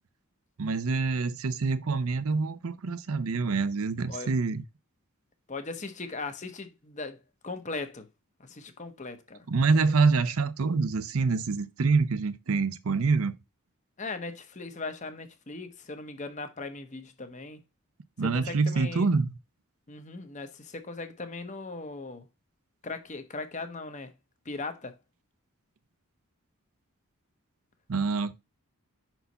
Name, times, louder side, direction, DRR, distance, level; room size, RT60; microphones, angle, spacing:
voice 1, 0.6-4.6 9.5-13.3 18.2-19.3 27.9-28.3, right 4 dB, 75° right, 0.6 m, -26 dB
voice 2, 5.5-8.1 8.4-9.5 14.0-17.6 18.2-19.1 19.9-22.3 22.8-24.1 24.4-25.0, left 3 dB, 35° left, 0.8 m, -38 dB
5.6 x 4.6 x 3.9 m
head